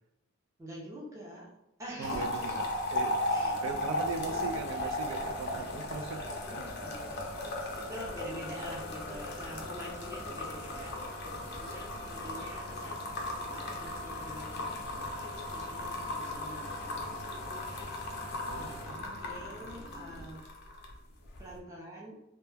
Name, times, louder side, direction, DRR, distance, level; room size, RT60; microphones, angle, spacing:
voice 1, 0.6-1.5 1.8-2.6 3.3-4.9 6.5-7.2 7.5-20.5 21.4-22.2, equal, 15° right, -5 dB, 0.5 m, -46 dB
sound 1, 2.0-21.0 21.3-21.6, left 1 dB, 55° left, 0.5 m, -36 dB
voice 2, 2.0-6.4 18.4-19.3, right 5 dB, 75° right, 6 dB, 0.3 m, -40 dB
sound 2, 4.1-20.3, left 1 dB, 40° right, 0.9 m, -49 dB
2.2 x 2.1 x 3.2 m, 0.85 s
head